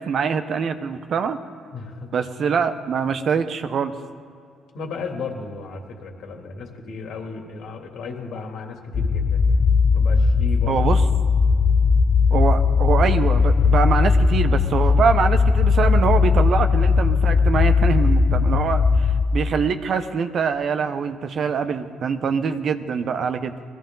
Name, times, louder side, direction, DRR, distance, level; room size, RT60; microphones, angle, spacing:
voice 1, 0.0-1.4 2.1-3.9 10.7-11.0 12.3-23.5, right 6 dB, 60° right, 8 dB, 1.0 m, -24 dB
voice 2, 1.7-2.1 4.7-9.6 9.9-10.8 12.3-12.5, left 4 dB, 75° left, 1 dB, 2.8 m, -35 dB
sound 1, 8.9-19.2, left 5 dB, 40° left, 0.9 m, -18 dB
20.0 x 14.5 x 3.9 m, 2.3 s
supercardioid pair, 70°, 0 cm